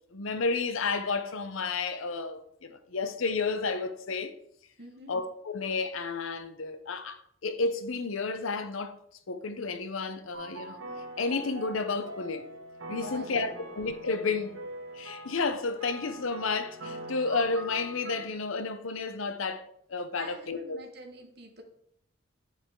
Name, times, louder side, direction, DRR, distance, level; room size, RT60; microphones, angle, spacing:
voice 1, 0.1-4.3 5.1-9.0 9.3-10.8 11.2-12.5 12.9-14.6 14.9-20.8, left 4 dB, 80° left, 0.7 m, -31 dB
voice 2, 4.8-5.1 13.0-13.7 20.1-21.6, right 1 dB, 50° right, 1.3 m, -47 dB
sound 1, 10.3-18.3, right 1 dB, 75° right, 1.2 m, -43 dB
9.0 x 4.9 x 3.6 m
head